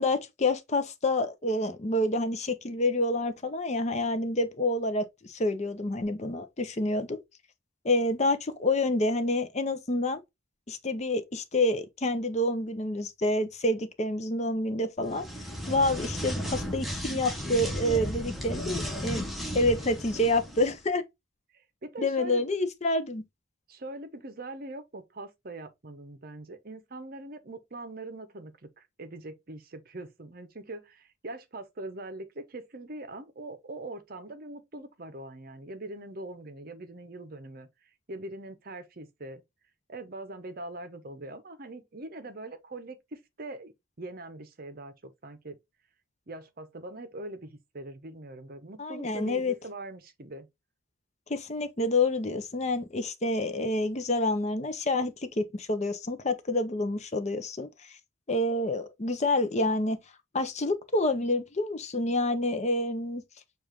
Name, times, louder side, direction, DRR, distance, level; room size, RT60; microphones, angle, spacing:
voice 1, 0.0-7.2 7.8-10.2 10.7-15.2 15.7-19.2 19.5-21.0 22.0-23.2 48.8-49.5 51.3-57.7 58.3-60.0 60.3-63.2, left 2 dB, 35° left, 0.6 m, -28 dB
sound 1, 15.0-20.7, equal, ahead, 0.8 m, -34 dB
voice 2, 21.5-22.5 23.7-39.4 39.9-45.6 46.3-50.5, right 2 dB, 45° right, 0.7 m, -42 dB
7.0 x 2.5 x 2.9 m
head